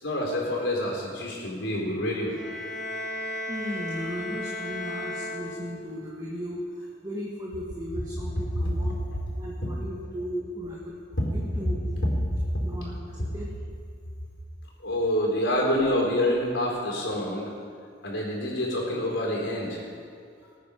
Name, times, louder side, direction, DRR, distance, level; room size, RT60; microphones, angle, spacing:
voice 1, 0.0-2.3 8.6-8.7 11.2-11.3 11.6-11.7 14.8-17.5 18.0-19.8, left 1 dB, 80° left, -2 dB, 4.2 m, -27 dB
sound 1, 2.2-6.1, left 1 dB, 5° left, 3.1 m, -35 dB
voice 2, 3.5-9.0 9.3-10.9 11.3-11.8 12.6-13.5, equal, 20° right, -5 dB, 1.7 m, -36 dB
20.0 x 9.3 x 5.1 m, 2.3 s
head